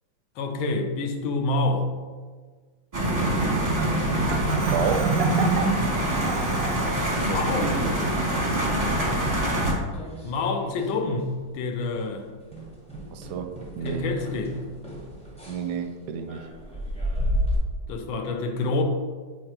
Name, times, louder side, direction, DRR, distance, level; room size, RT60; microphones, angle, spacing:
voice 1, 0.4-1.9 7.2-7.7 10.2-12.3 13.8-14.6 17.9-18.8, left 3 dB, 80° left, 5 dB, 1.5 m, -27 dB
sound 1, 2.9-9.7, right 1 dB, 30° right, 0.8 m, -25 dB
Marimba xylophone, 3.6-7.0, right 4 dB, 90° right, 0.7 m, -27 dB
voice 2, 4.6-5.2 7.2-7.5 13.1-14.1 15.5-16.5, right 7 dB, 75° right, 8 dB, 1.0 m, -30 dB
sound 2, 9.9-10.9 11.2-11.6 11.9-12.1 12.5-17.6, equal, 5° left, 0.5 m, -33 dB
7.6 x 4.7 x 2.9 m, 1.5 s
omnidirectional pair, 2.1 m